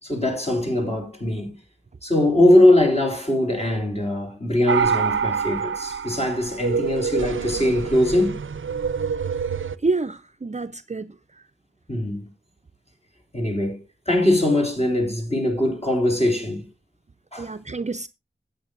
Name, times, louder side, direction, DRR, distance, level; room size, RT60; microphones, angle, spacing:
voice 1, 0.0-1.6 2.0-8.4 11.9-12.3 13.3-16.7 17.3-17.5, left 1 dB, 30° left, 4.0 m, -21 dB
sound 1, 4.7-9.7, right 6 dB, 85° right, 0.6 m, -26 dB
voice 2, 9.8-11.2 17.4-18.1, right 3 dB, 35° right, 0.6 m, -27 dB
16.5 x 8.7 x 2.5 m
wide cardioid pair, 55°, 20 cm